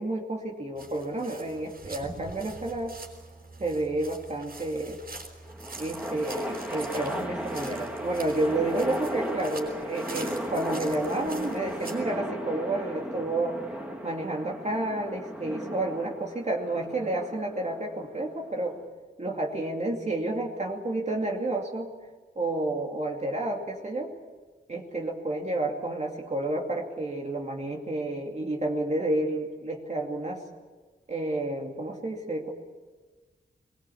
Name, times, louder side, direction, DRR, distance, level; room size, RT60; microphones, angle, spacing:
voice 1, 0.0-3.0 3.6-5.0 5.8-13.6 14.0-18.7 19.2-21.9 22.4-24.1 24.7-30.4 31.1-32.5, right 2 dB, 35° right, 0 dB, 2.5 m, -30 dB
sound 1, 0.8-12.0, right 3 dB, 55° right, 5.4 m, -44 dB
sound 2, 5.4-18.8, equal, 5° right, 2.5 m, -36 dB
22.5 x 21.0 x 8.5 m, 1.3 s
wide cardioid pair, 130°, 19 cm